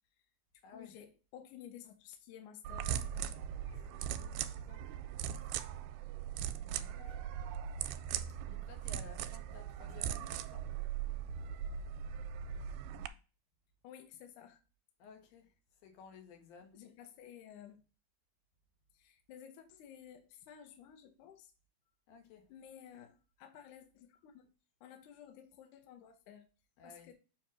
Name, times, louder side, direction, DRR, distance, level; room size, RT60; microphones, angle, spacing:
voice 1, 0.7-3.3 3.6-3.9 5.3-5.5 7.0-7.3 13.8-14.6 16.7-17.8 18.9-21.5 22.5-24.5 24.8-26.5 26.8-27.1, left 9 dB, 70° left, 2.1 m, -54 dB
sound 1, 2.6-13.1, right 9 dB, 85° right, 2.3 m, -40 dB
voice 2, 3.9-4.9 6.6-7.2 8.4-10.7 15.0-16.8 22.1-22.5 26.8-27.1, left 5 dB, 85° left, 3.2 m, -56 dB
7.2 x 3.0 x 6.0 m
omnidirectional pair, 4.0 m